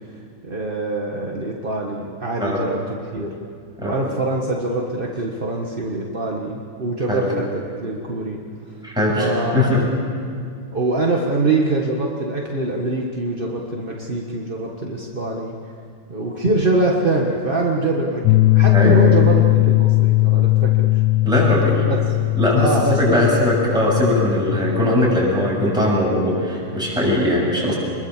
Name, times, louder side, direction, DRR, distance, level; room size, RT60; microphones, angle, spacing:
voice 1, 0.4-2.8 3.1-3.3 3.8-7.4 7.8-8.4 9.2-9.9 10.7-15.6 16.1-21.0 21.8-22.0 22.6-23.2, right 2 dB, 30° right, -1 dB, 1.0 m, -23 dB
voice 2, 8.8-9.8 18.7-19.0 21.2-21.8 22.4-22.7 23.0-27.7, left 1 dB, ahead, -5 dB, 7.4 m, -19 dB
sound 1, 18.2-24.9, left 19 dB, 80° left, 2.1 m, -18 dB
26.5 x 22.0 x 7.4 m, 2.3 s
omnidirectional pair, 3.4 m